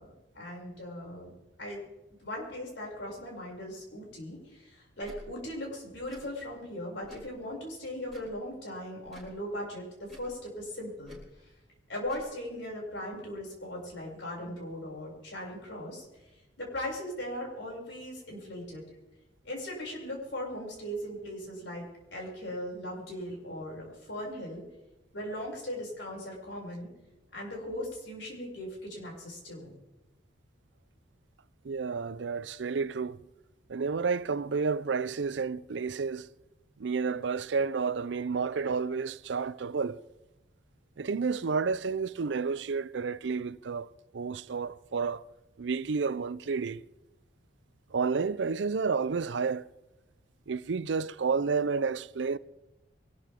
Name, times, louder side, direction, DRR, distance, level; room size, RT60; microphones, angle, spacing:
voice 1, 0.0-1.3 1.6-1.8 2.2-11.2 11.9-16.0 16.6-18.8 19.4-21.8 22.1-24.6 25.1-26.9 27.3-29.7, left 1 dB, 90° left, 6.6 m, -39 dB
Tick / Tick-tock, 5.0-5.2 6.0-6.3 7.0-7.3 8.0-8.4 9.0-9.3 10.0-10.3 11.0-11.3 12.0-12.3, equal, ahead, 6.2 m, -51 dB
voice 2, 31.6-33.2 33.7-36.3 36.8-40.0 41.0-43.9 44.1-45.2 45.6-46.8 47.9-49.6 50.5-52.4, right 5 dB, 80° right, 0.5 m, -30 dB
24.0 x 13.0 x 3.7 m
head